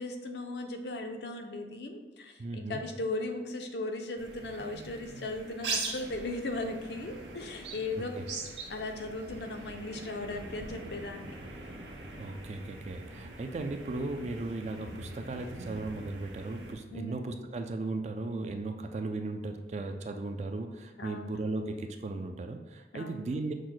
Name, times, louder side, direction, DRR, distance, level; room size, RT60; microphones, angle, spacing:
voice 1, 0.0-8.1 8.7-11.4 16.9-17.3 21.0-21.4 22.9-23.3, left 2 dB, 70° left, 5 dB, 0.5 m, -37 dB
voice 2, 2.4-2.8 8.0-8.2 12.2-23.5, right 2 dB, 40° right, 6 dB, 0.3 m, -36 dB
sound 1, 4.2-16.7, right 3 dB, 85° right, 0.8 m, -42 dB
6.3 x 2.1 x 3.9 m, 1.2 s
head